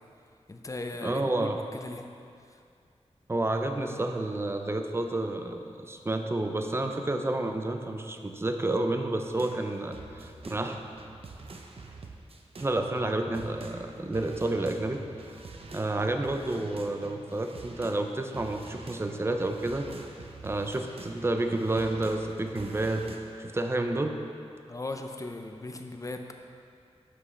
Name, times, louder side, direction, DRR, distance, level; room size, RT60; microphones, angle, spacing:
voice 1, 0.5-2.1 24.7-26.3, left 2 dB, 30° left, 5 dB, 0.6 m, -37 dB
voice 2, 1.0-1.6 3.3-10.8 12.6-15.0 15.7-19.9 20.4-23.1 23.4-24.2, right 2 dB, 20° right, 5 dB, 0.6 m, -30 dB
sound 1, 9.3-18.1 18.3-23.2, right 3 dB, 55° right, 0.7 m, -46 dB
9.4 x 6.1 x 3.3 m, 2.4 s
wide cardioid pair, 70°, 11 cm